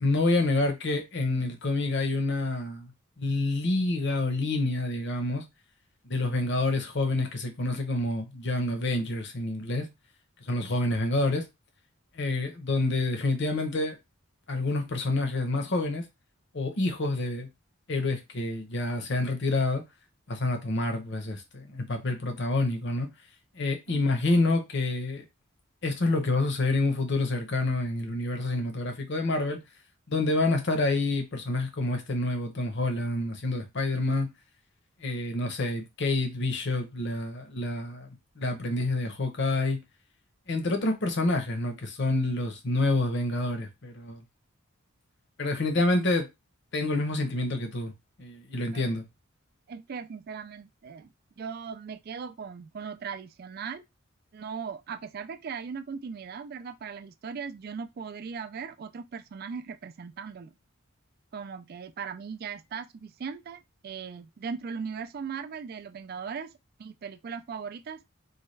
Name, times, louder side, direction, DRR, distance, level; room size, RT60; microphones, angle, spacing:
voice 1, 0.0-2.9 3.2-5.4 6.0-9.9 10.4-11.5 12.1-14.0 14.5-16.0 16.5-17.5 17.9-19.8 20.3-23.1 23.5-25.2 25.8-29.6 30.1-34.3 35.0-38.1 38.4-39.8 40.5-44.2 45.4-46.2 46.7-47.9 48.2-49.0, left 2 dB, 55° left, 0.8 m, -28 dB
voice 2, 49.7-51.1 51.4-53.8 54.3-60.5 61.3-66.5 66.8-68.0, right 6 dB, 45° right, 0.3 m, -38 dB
4.1 x 2.3 x 3.2 m
head